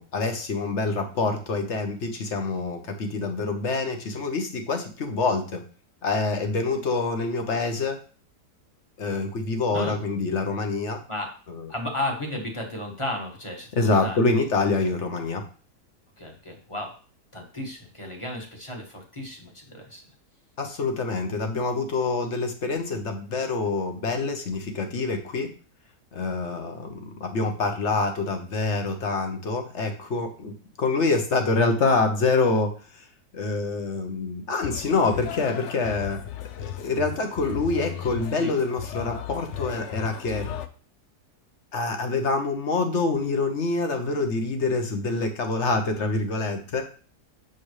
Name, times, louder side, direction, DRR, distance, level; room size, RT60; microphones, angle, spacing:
voice 1, 0.0-5.6 6.0-8.0 9.0-11.0 11.5-11.7 13.8-15.4 20.6-25.5 26.1-32.7 33.3-36.2 36.6-40.5 41.7-46.8, left 3 dB, 50° left, 5 dB, 1.1 m, -26 dB
voice 2, 11.7-14.2 14.8-14.9 16.2-16.9 17.3-20.0 38.4-38.6 40.3-40.5, left 1 dB, 20° left, 1 dB, 1.2 m, -34 dB
sound 1, 34.6-40.7, left 11 dB, 70° left, 0.7 m, -36 dB
7.2 x 4.6 x 3.2 m, 0.40 s
omnidirectional pair, 1.7 m